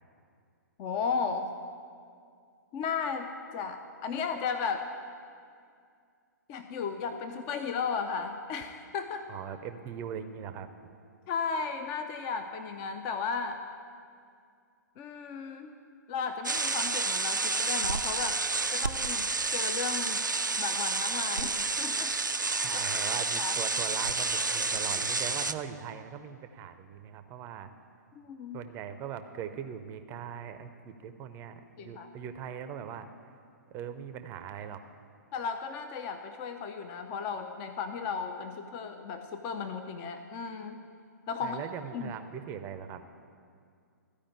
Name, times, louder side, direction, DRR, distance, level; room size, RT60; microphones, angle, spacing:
voice 1, 0.8-1.5 2.7-3.3 3.5-4.9 6.5-9.2 11.3-13.6 15.0-15.7 16.1-18.4 18.7-19.3 19.5-20.2 20.6-22.1 23.2-23.5 28.2-28.6 31.8-32.1 35.3-40.8 41.3-41.6 41.9-42.1, left 5 dB, 30° left, 7 dB, 0.6 m, -35 dB
voice 2, 9.3-10.7 22.6-27.7 28.5-33.1 33.7-34.8 41.4-43.0, right 8 dB, 25° right, 9 dB, 0.6 m, -40 dB
sound 1, 16.4-25.5, right 3 dB, 90° right, 0.4 m, -30 dB
14.0 x 5.1 x 8.5 m, 2.3 s
figure-of-eight pair, 120°, 10 cm